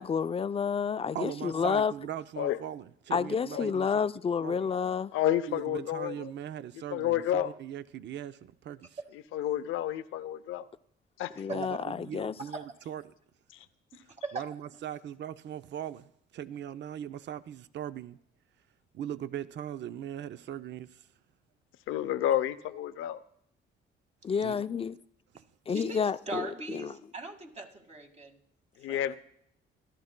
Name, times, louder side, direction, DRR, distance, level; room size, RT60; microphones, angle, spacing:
voice 1, 0.0-1.9 3.1-5.1 11.4-12.3 24.2-25.0 25.7-27.0, left 6 dB, 30° left, 0.4 m, -30 dB
voice 2, 1.1-3.9 4.4-4.6 5.5-9.0 11.5-13.1 14.3-18.2 18.9-21.1 24.4-24.5, right 10 dB, 65° right, 0.5 m, -40 dB
voice 3, 5.1-6.3 6.9-7.5 9.3-10.7 11.2-11.4 13.5-13.7 21.9-23.2 28.8-29.1, left 11 dB, 90° left, 0.6 m, -30 dB
voice 4, 13.9-14.5 25.7-28.4 28.9-29.0, right 2 dB, 35° right, 1.9 m, -40 dB
27.5 x 11.5 x 2.2 m
cardioid pair, 90°, 20 cm